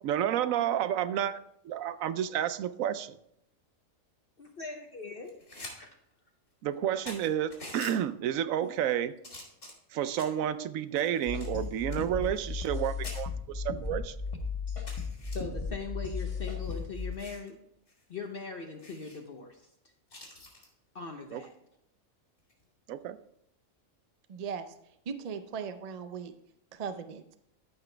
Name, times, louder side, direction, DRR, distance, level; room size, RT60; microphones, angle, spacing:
voice 1, 0.0-1.4 1.6-3.2 6.6-9.1 9.9-14.2 21.3-21.4 22.9-23.2, right 10 dB, 85° right, 13 dB, 1.0 m, -30 dB
voice 2, 4.4-5.3 5.7-6.0 8.6-8.7 15.3-17.6 18.1-19.6 20.9-21.5, left 4 dB, 50° left, 3 dB, 0.9 m, -40 dB
sound 1, 5.2-5.7 6.1-6.2 6.7-6.8 7.1-8.0 8.6-8.9 9.2-10.4 11.0-12.8 13.0-13.2 13.8-13.9 14.3-14.4 14.9-15.4 16.2-17.5 17.9-18.0 18.3-18.4 18.8-19.2 20.1-20.7 22.4-22.6, left 2 dB, 70° left, 3.1 m, -47 dB
sound 2, 11.3-17.2, left 4 dB, 25° left, 1.3 m, -35 dB
voice 3, 24.3-24.7 25.1-26.3 26.7-27.2, right 6 dB, 60° right, 9 dB, 0.4 m, -38 dB
13.5 x 5.9 x 3.3 m, 0.74 s
omnidirectional pair, 1.4 m